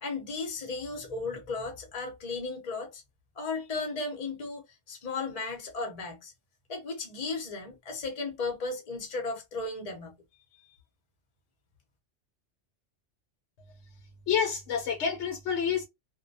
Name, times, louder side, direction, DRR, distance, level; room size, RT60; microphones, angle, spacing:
voice 1, 0.0-3.0 3.4-6.3 6.7-10.1, left 3 dB, 40° left, 0.7 m, -35 dB
voice 2, 14.3-15.9, left 7 dB, 75° left, 0.9 m, -28 dB
2.2 x 2.1 x 2.6 m
omnidirectional pair, 1.2 m